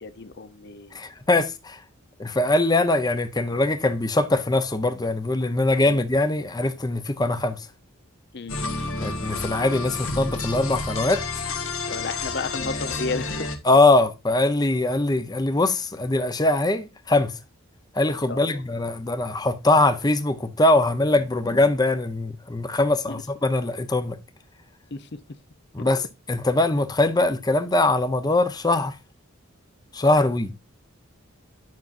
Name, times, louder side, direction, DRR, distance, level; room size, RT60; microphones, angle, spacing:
voice 1, 0.0-1.0 5.8-6.0 8.3-8.5 11.9-13.5 18.3-18.6 23.1-23.2 24.9-25.2 25.8-25.9 30.0-30.1, left 3 dB, 50° left, 0.8 m, -33 dB
voice 2, 0.9-1.8 2.2-7.7 9.0-11.2 13.6-17.3 17.9-24.2 25.7-29.0 29.9-30.5, left 2 dB, 20° left, 0.7 m, -22 dB
sound 1, 8.5-13.6, left 3 dB, 70° left, 1.6 m, -30 dB
9.5 x 6.1 x 2.6 m
head